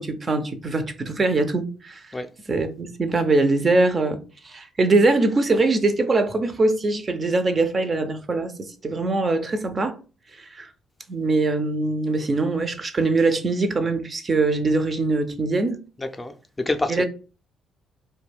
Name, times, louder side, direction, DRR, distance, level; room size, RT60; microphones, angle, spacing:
voice 1, 0.0-2.1 2.5-10.0 10.4-10.7 11.1-15.8 16.9-17.1, right 3 dB, 40° right, 0.4 m, -22 dB
voice 2, 16.0-17.1, left 2 dB, 20° left, 0.4 m, -27 dB
2.3 x 2.2 x 3.3 m
hypercardioid pair, 50°, 0 cm